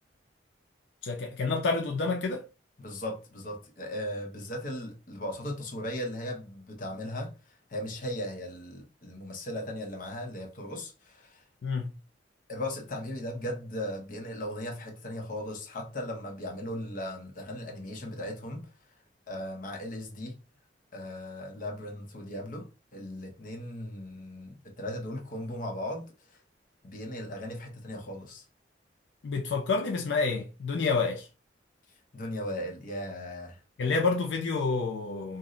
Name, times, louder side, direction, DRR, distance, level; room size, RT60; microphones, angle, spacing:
voice 1, 1.0-2.4 11.6-11.9 29.2-31.3 33.8-35.4, left 4 dB, 80° left, 0.4 m, -28 dB
voice 2, 2.8-7.3 7.7-11.4 12.5-18.7 19.3-20.4 20.9-26.1 26.8-28.4 32.1-33.6, left 1 dB, 50° left, 0.8 m, -37 dB
2.6 x 2.0 x 3.7 m
head